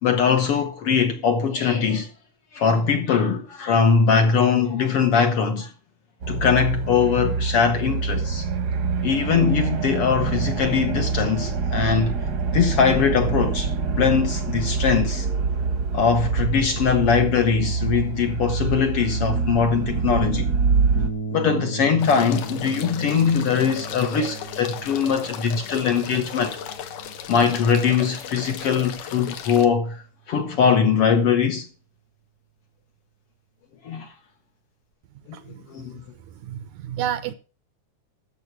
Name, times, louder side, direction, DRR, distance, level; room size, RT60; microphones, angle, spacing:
voice 1, 0.0-2.1 2.5-5.7 6.3-8.5 9.0-12.1 12.5-13.7 14.0-15.3 15.9-20.5 21.3-26.6 27.3-31.7 33.8-34.1 35.3-35.4 35.7-36.0, left 6 dB, 60° left, 1.7 m, -21 dB
sound 1, 6.2-21.1, right 5 dB, 50° right, 1.2 m, -25 dB
sound 2, 20.9-29.4, right 4 dB, 45° left, 1.2 m, -37 dB
sound 3, 22.0-29.7, left 9 dB, 80° left, 2.8 m, -36 dB
voice 2, 35.3-35.6 36.3-37.3, right 10 dB, 75° right, 1.9 m, -30 dB
13.5 x 6.8 x 6.0 m
omnidirectional pair, 3.7 m